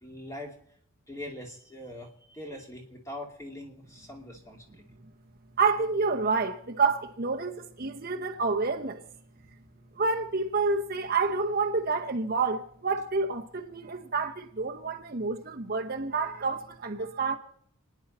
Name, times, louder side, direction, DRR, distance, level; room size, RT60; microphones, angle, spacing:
voice 1, 0.0-0.6 1.1-4.8, left 1 dB, 15° left, 2.6 m, -42 dB
voice 2, 5.6-9.0 10.0-17.4, right 4 dB, 45° right, 0.9 m, -28 dB
29.5 x 10.0 x 4.2 m
head